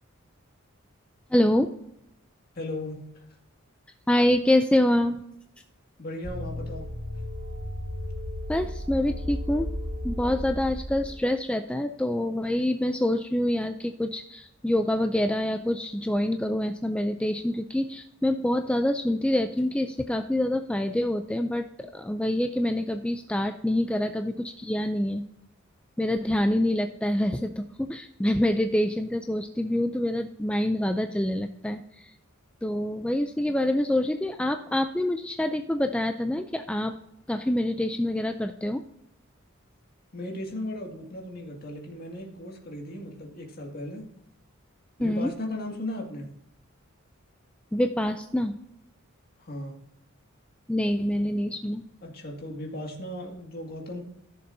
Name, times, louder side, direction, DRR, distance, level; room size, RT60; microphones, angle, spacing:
voice 1, 1.3-1.7 4.1-5.2 8.5-9.7 10.0-25.2 26.0-32.1 32.6-36.9 37.3-38.8 45.0-45.3 47.7-48.6 50.7-51.8, left 1 dB, 5° left, 6 dB, 0.3 m, -26 dB
voice 2, 2.6-3.2 6.0-6.9 40.1-44.0 45.0-46.3 49.4-49.8 52.0-54.0, left 1 dB, 45° left, 0 dB, 2.1 m, -36 dB
sound 1, 6.2-11.2, left 1 dB, 75° right, 2.4 m, -34 dB
14.5 x 6.8 x 2.7 m, 0.80 s
head